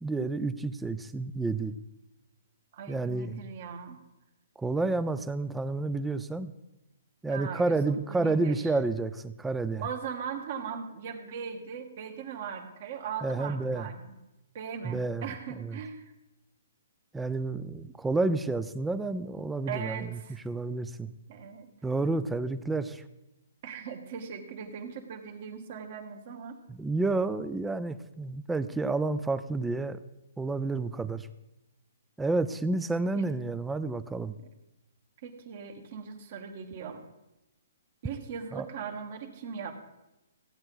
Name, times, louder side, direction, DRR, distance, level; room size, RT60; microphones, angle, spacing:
voice 1, 0.0-1.7 2.9-3.4 4.6-6.5 7.2-9.9 13.2-13.9 14.8-15.3 15.5-15.8 17.1-20.2 20.4-21.1 21.8-23.0 26.7-30.0 30.4-31.3 32.2-34.4 38.5-38.7, right 3 dB, 5° right, 13 dB, 0.4 m, -30 dB
voice 2, 2.7-4.0 7.2-8.6 9.8-14.0 14.5-16.1 19.7-20.4 21.3-21.7 23.6-26.6 33.1-33.3 35.2-37.0 38.0-39.7, right 7 dB, 45° right, 6 dB, 1.4 m, -39 dB
15.0 x 8.9 x 3.9 m, 0.96 s
hypercardioid pair, 160°, 0 cm